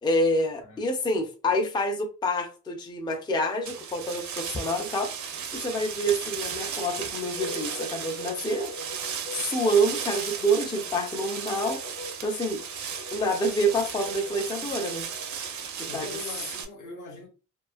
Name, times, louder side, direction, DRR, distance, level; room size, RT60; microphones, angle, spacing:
voice 1, 0.0-5.1 5.5-8.7 9.3-11.8 12.2-12.6 13.1-15.1 15.8-16.1, equal, 15° left, 0.3 m, -27 dB
sound 1, 3.7-16.7, right 7 dB, 75° right, 0.5 m, -35 dB
sound 2, 7.4-15.6, left 1 dB, 55° left, 0.7 m, -43 dB
voice 2, 15.9-17.3, left 3 dB, 90° left, 0.9 m, -42 dB
2.4 x 2.4 x 2.4 m
wide cardioid pair, 175°, 29 cm